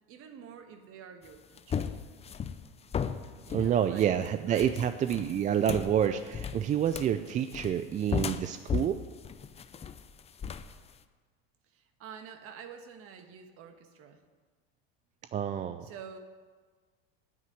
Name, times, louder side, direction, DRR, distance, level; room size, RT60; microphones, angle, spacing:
voice 1, 0.1-1.8 3.4-4.1 4.5-4.7 11.7-14.2 15.8-16.2, right 7 dB, 45° right, 6 dB, 1.6 m, -48 dB
sound 1, 1.2-10.9, left 7 dB, 20° left, 0.6 m, -36 dB
voice 2, 3.5-9.0 15.3-15.9, right 9 dB, 25° right, 10 dB, 0.4 m, -28 dB
9.5 x 8.3 x 9.5 m, 1.5 s
supercardioid pair, 115°, 31 cm